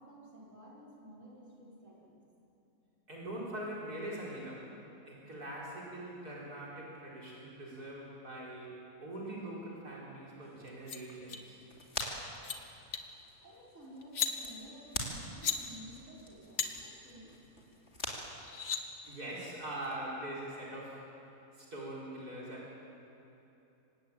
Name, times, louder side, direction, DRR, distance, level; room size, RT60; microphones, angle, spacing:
voice 1, 0.0-2.2 13.4-17.3, right 1 dB, 55° right, -5 dB, 5.5 m, -53 dB
voice 2, 3.1-4.7 5.1-8.7 9.0-11.6 19.0-21.0 21.5-22.7, right 1 dB, 80° right, -5 dB, 5.3 m, -42 dB
sound 1, 10.4-20.0, left 1 dB, 45° left, 3.4 m, -46 dB
sound 2, 10.7-11.0 11.3-11.4 11.8-12.1 12.3-12.6 12.9-13.1 14.0-14.3 15.2-15.6 16.6-16.7 18.0-18.1 18.4-18.8, left 7 dB, 60° left, 1.8 m, -34 dB
25.5 x 20.0 x 8.9 m, 2.9 s
omnidirectional pair, 1.6 m